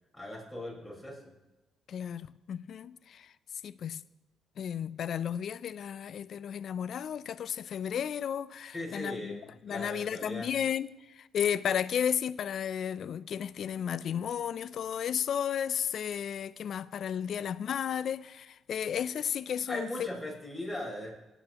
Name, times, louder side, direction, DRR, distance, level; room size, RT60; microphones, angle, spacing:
voice 1, 0.1-1.2 8.7-10.5 19.7-21.1, left 1 dB, ahead, 4.6 m, -39 dB
voice 2, 1.9-3.3 3.6-4.0 4.6-20.1, left 8 dB, 65° left, 0.4 m, -33 dB
18.0 x 9.0 x 2.9 m
cardioid pair, 90°, 0 cm